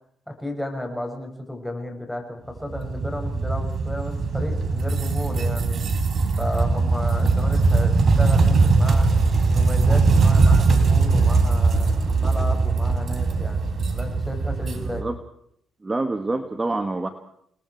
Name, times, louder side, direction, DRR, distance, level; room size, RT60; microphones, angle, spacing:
voice 1, 0.3-5.8 6.4-9.1 9.5-15.0, left 1 dB, 5° left, 2 dB, 6.6 m, -33 dB
sound 1, 2.6-15.0, right 3 dB, 45° right, 3.9 m, -20 dB
voice 2, 14.7-15.2 15.8-17.1, right 2 dB, 20° right, 7 dB, 1.8 m, -27 dB
29.0 x 20.0 x 4.7 m, 0.67 s
cardioid pair, 90°, 0 cm